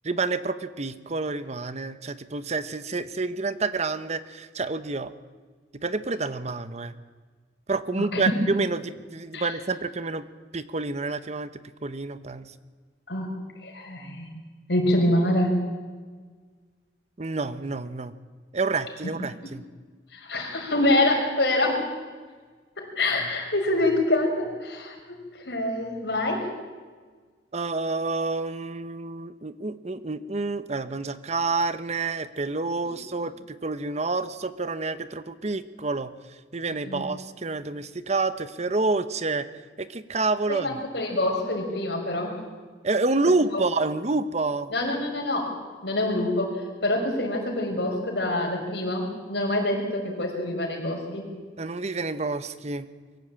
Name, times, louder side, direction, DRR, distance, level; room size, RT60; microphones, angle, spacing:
voice 1, 0.0-5.1 5.7-6.9 7.7-10.2 10.5-11.5 11.8-12.5 17.2-18.1 18.5-19.6 27.5-33.3 33.6-36.1 36.5-39.5 39.8-40.8 42.8-44.7 51.6-52.9, right 3 dB, 40° right, 13 dB, 0.9 m, -28 dB
voice 2, 8.0-8.3 9.3-9.5 13.1-13.3 13.6-14.3 14.7-15.6 19.0-19.1 20.1-21.9 22.8-25.0 25.3-26.5 32.8-33.0 36.9-37.0 40.5-42.3 43.5-43.6 44.7-51.3, left 1 dB, 70° left, 1 dB, 5.7 m, -26 dB
23.5 x 15.5 x 8.8 m, 1.5 s
head